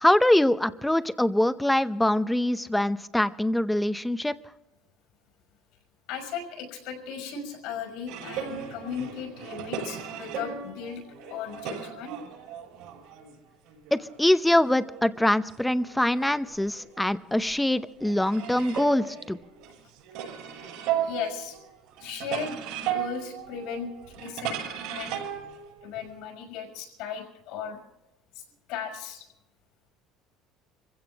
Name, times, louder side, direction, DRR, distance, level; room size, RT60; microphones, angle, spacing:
voice 1, 0.0-4.3 13.9-19.4, left 1 dB, 5° left, 13 dB, 0.7 m, -24 dB
voice 2, 6.1-12.2 21.0-21.6 22.0-25.2 25.8-27.8 28.3-29.3, left 7 dB, 75° left, 4 dB, 5.6 m, -37 dB
sound 1, 8.1-13.4 13.7-17.0 17.4-26.2, right 9 dB, 75° right, 6.7 m, -36 dB
25.5 x 16.0 x 3.5 m, 0.93 s
cardioid pair, 145°, 0 cm